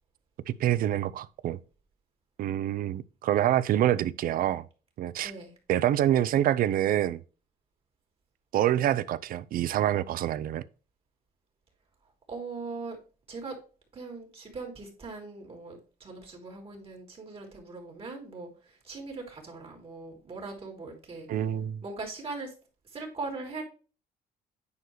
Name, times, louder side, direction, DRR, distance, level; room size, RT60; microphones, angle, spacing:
voice 1, 0.6-1.6 2.4-4.7 5.0-5.3 5.7-7.2 8.5-10.6 21.3-21.8, right 12 dB, 60° right, 0.5 m, -26 dB
voice 2, 5.2-5.5 12.3-13.0 13.3-13.6 13.9-21.3 21.8-22.5 22.8-23.6, right 3 dB, 35° right, 3.1 m, -40 dB
9.6 x 4.7 x 3.1 m
cardioid pair, 110°, 17 cm